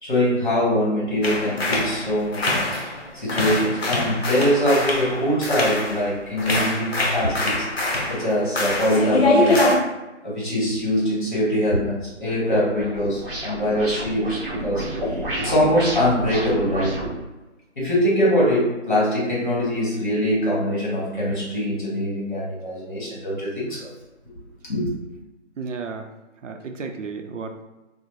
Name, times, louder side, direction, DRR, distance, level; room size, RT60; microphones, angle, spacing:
voice 1, 0.0-2.6 3.1-7.7 8.1-9.6 10.2-17.0 17.8-23.9 24.7-24.9, equal, 40° left, -6 dB, 1.0 m, -23 dB
sound 1, 1.2-3.0 3.3-6.1 6.4-9.8, left 2 dB, 55° left, 0.6 m, -23 dB
sound 2, 12.2-17.1, right 1 dB, 50° right, 0.7 m, -30 dB
voice 2, 25.6-26.1 26.4-27.6, right 4 dB, 85° right, 5 dB, 0.5 m, -33 dB
2.5 x 2.0 x 3.0 m, 1.1 s
figure-of-eight pair, 175°, 37 cm